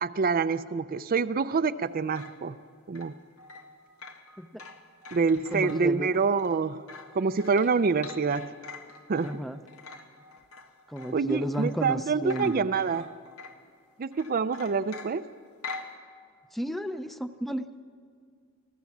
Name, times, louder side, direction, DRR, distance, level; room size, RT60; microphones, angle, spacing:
voice 1, 0.0-2.6 2.9-3.1 5.1-6.9 7.1-8.5 9.1-9.4 11.1-13.1 14.0-15.2, right 5 dB, 45° right, 12 dB, 0.5 m, -26 dB
sound 1, 1.8-12.0 12.3-13.8 14.1-16.0, left 3 dB, 90° left, 1.7 m, -45 dB
voice 2, 5.5-6.1 9.2-9.6 10.9-12.7 16.5-17.8, equal, ahead, 10 dB, 0.6 m, -33 dB
26.0 x 15.5 x 7.2 m, 2.1 s
head